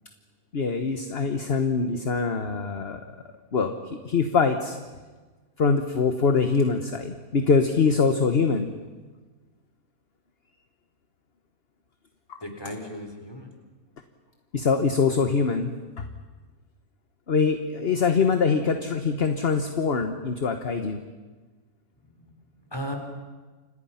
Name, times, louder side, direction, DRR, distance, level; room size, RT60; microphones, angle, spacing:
voice 1, 0.5-3.0 3.5-4.8 5.6-8.7 12.3-12.4 14.5-16.1 17.3-21.0, left 5 dB, 40° left, 7 dB, 1.4 m, -24 dB
voice 2, 12.4-13.5 22.0-22.3 22.6-23.0, equal, 15° left, 3 dB, 4.0 m, -36 dB
29.5 x 26.5 x 5.8 m, 1.3 s
omnidirectional pair, 1.7 m